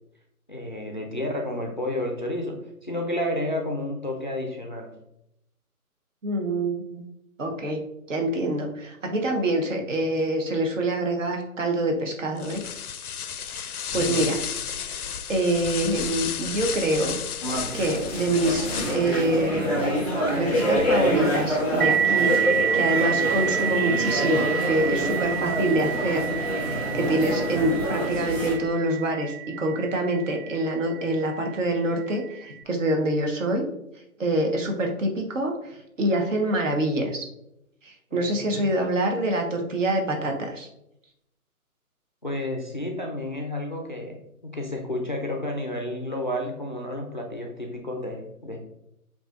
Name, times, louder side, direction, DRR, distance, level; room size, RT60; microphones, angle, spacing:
voice 1, 0.5-4.9 14.0-14.4 38.1-38.6 42.2-48.6, left 1 dB, 35° left, 1 dB, 0.4 m, -31 dB
voice 2, 6.2-7.0 7.4-7.8 8.1-12.6 13.4-14.4 14.7-14.8 15.3-17.2 17.7-19.7 20.0-22.3 22.7-26.2 26.5-33.7 34.2-35.5 36.0-37.3 37.8-40.7, right 1 dB, 55° right, 2 dB, 1.2 m, -26 dB
sound 1, 12.4-19.2, left 8 dB, 85° left, 0.5 m, -33 dB
sound 2, 17.4-28.5, equal, 5° right, 1.0 m, -27 dB
sound 3, 21.8-31.0, right 9 dB, 85° right, 0.5 m, -28 dB
7.5 x 2.8 x 2.4 m, 0.81 s
figure-of-eight pair, 150°, 44 cm